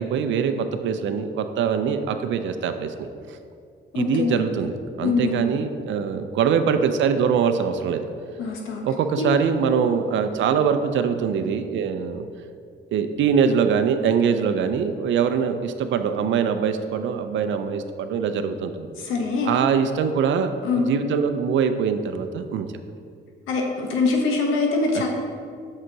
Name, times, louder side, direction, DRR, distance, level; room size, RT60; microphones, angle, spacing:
voice 1, 0.0-3.1 3.9-8.0 8.8-12.3 12.9-18.9 19.4-22.7, right 6 dB, 70° right, 8 dB, 0.5 m, -23 dB
voice 2, 3.9-4.5 5.0-5.5 8.4-8.8 9.2-9.3 19.0-19.5 20.6-20.9 23.5-25.1, left 4 dB, 90° left, 1 dB, 1.0 m, -23 dB
6.5 x 3.8 x 4.6 m, 2.3 s
cardioid pair, 90°, 20 cm